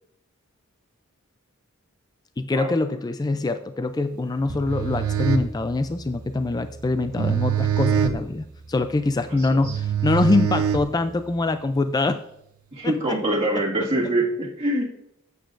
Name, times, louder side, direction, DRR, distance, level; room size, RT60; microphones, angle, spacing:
voice 1, 2.4-12.2 12.8-13.2 13.5-13.7, left 2 dB, 15° left, 10 dB, 0.3 m, -24 dB
sound 1, 4.4-11.4, right 8 dB, 75° right, 0.9 m, -26 dB
voice 2, 9.3-9.8 12.7-15.0, right 1 dB, 25° right, -3 dB, 1.9 m, -25 dB
12.5 x 8.1 x 2.5 m, 0.77 s
head